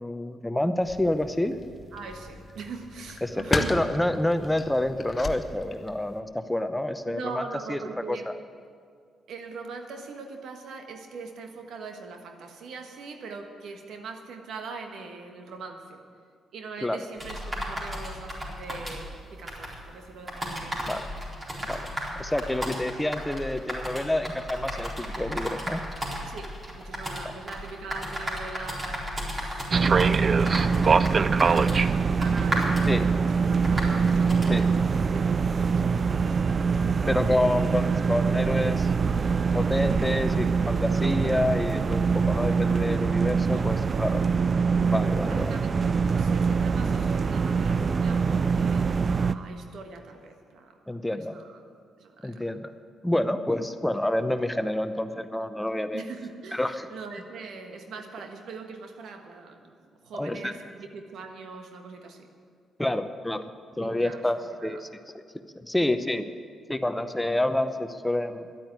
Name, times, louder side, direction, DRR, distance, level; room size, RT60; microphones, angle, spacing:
voice 1, 0.0-1.6 3.2-7.2 7.7-7.8 8.1-8.3 16.8-17.0 20.9-21.0 21.7-21.9 22.2-25.8 32.9-33.1 34.5-34.7 37.1-38.9 39.5-44.2 44.8-45.5 50.9-51.4 52.2-52.7 53.0-56.0 56.5-56.9 60.2-60.5 62.8-63.5 63.8-64.9 65.5-66.3 66.7-68.5, left 1 dB, 10° left, 10 dB, 0.8 m, -28 dB
sound 1, 0.8-6.2, left 3 dB, 35° left, 1.2 m, -35 dB
voice 2, 1.9-3.8 7.0-8.3 9.3-16.0 16.5-20.9 26.2-36.5 45.3-51.6 52.0-52.5 55.9-62.3 63.7-64.3 64.6-64.8, right 4 dB, 75° right, 5 dB, 1.5 m, -42 dB
sound 2, 17.2-34.7, equal, 30° right, 4.4 m, -35 dB
sound 3, 29.7-49.3, right 5 dB, 45° right, 0.4 m, -24 dB
11.5 x 8.7 x 9.6 m, 2.1 s
supercardioid pair, 65°, 0 cm